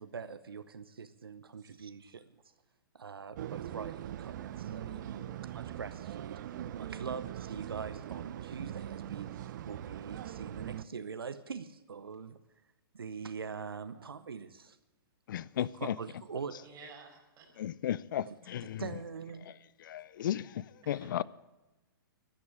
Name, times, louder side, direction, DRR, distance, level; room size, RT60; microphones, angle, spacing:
voice 1, 0.0-2.2 2.9-5.0 5.5-6.4 6.8-12.4 12.9-14.8 15.6-16.7 18.3-19.5, right 6 dB, 85° right, 0.8 m, -43 dB
sound 1, 3.4-10.8, right 11 dB, 55° right, 0.7 m, -41 dB
voice 2, 4.8-5.4 13.9-14.1 16.6-17.7 20.8-21.1, right 5 dB, 30° right, 5.2 m, -54 dB
voice 3, 15.3-15.9 17.6-18.8 19.8-21.2, left 11 dB, 60° left, 0.4 m, -35 dB
12.0 x 11.5 x 8.6 m
hypercardioid pair, 125°, 12 cm